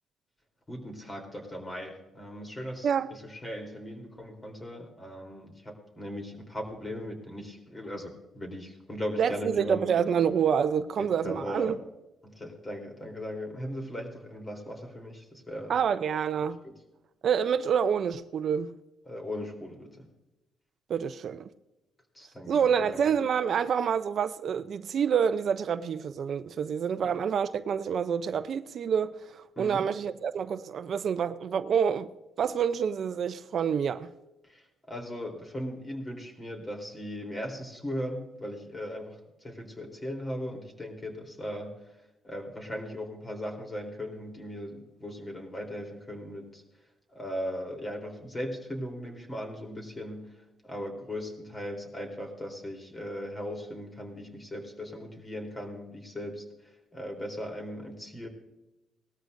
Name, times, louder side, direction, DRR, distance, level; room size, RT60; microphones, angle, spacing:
voice 1, 0.7-9.9 11.0-11.8 12.2-15.7 16.6-16.7 19.1-20.1 22.1-23.1 27.0-27.1 29.5-29.9 34.4-42.0 42.2-46.6 47.1-58.3, equal, 25° left, 3.4 m, -38 dB
voice 2, 9.2-11.8 15.7-16.6 17.2-18.7 20.9-21.5 22.5-32.1 32.4-34.1, right 7 dB, 60° right, 0.5 m, -27 dB
19.0 x 13.5 x 2.6 m
cardioid pair, 90°, 0 cm